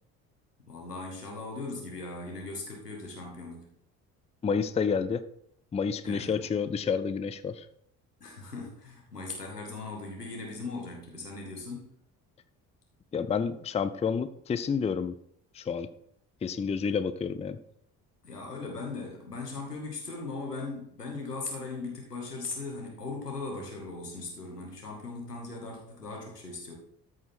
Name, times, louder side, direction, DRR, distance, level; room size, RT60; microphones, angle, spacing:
voice 1, 0.7-3.7 6.0-6.5 8.2-11.9 18.2-26.7, left 3 dB, 85° left, -1 dB, 1.9 m, -39 dB
voice 2, 4.4-5.2 5.7-7.6 13.1-15.2 15.5-15.9 16.4-17.6, left 6 dB, 15° left, 12 dB, 0.5 m, -29 dB
13.5 x 4.9 x 4.4 m, 0.68 s
figure-of-eight pair, 50°, 46 cm